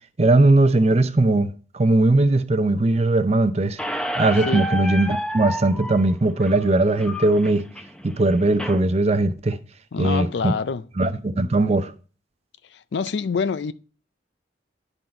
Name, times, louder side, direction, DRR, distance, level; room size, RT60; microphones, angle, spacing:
voice 1, 0.2-3.8 4.1-7.7 8.0-9.6 10.0-10.6 11.0-11.9, right 2 dB, 35° right, 0.6 m, -19 dB
Squeak, 3.8-8.8, equal, 5° left, 0.6 m, -31 dB
voice 2, 9.9-10.8 12.7-13.7, left 5 dB, 70° left, 0.4 m, -26 dB
11.0 x 3.9 x 4.4 m
head